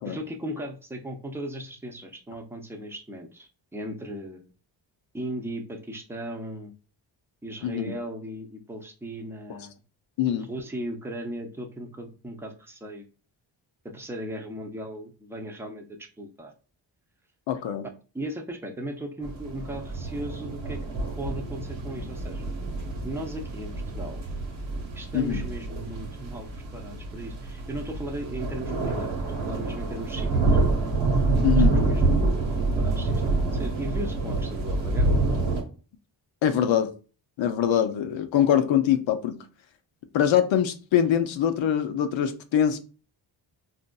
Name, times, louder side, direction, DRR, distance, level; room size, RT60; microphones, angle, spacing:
voice 1, 0.0-4.5 5.1-6.7 7.4-9.8 10.5-13.1 13.8-16.5 18.1-20.9 21.2-22.5 23.0-24.2 24.9-30.5 31.5-35.2, right 1 dB, 5° right, 0.6 m, -37 dB
voice 2, 7.6-7.9 10.2-10.5 17.5-17.9 25.1-25.5 31.4-31.7 36.4-36.9 37.4-39.4 40.1-42.8, left 9 dB, 75° left, 0.6 m, -23 dB
sound 1, 19.2-35.6, right 3 dB, 85° right, 1.2 m, -27 dB
4.0 x 2.5 x 2.2 m
cardioid pair, 55°, 47 cm